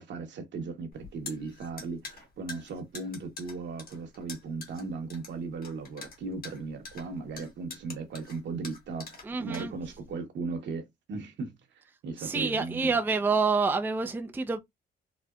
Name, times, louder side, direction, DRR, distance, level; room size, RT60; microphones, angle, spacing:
voice 1, 0.0-12.9, right 4 dB, 65° right, 1.1 m, -37 dB
sound 1, 0.9-10.1, left 4 dB, 50° left, 1.4 m, -45 dB
voice 2, 9.2-9.7 12.2-14.6, right 4 dB, 10° right, 0.4 m, -27 dB
4.2 x 2.0 x 2.3 m
cardioid pair, 90°, 20 cm